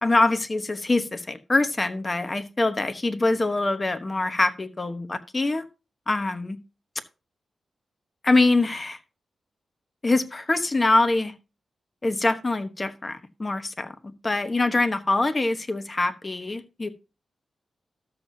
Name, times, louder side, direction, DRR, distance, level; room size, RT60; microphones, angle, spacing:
voice 1, 0.0-5.6 6.1-6.6 8.2-9.0 10.0-11.3 12.0-16.9, left 2 dB, 30° left, 1.1 m, -24 dB
13.0 x 7.5 x 2.7 m
cardioid pair, 85°, 0 cm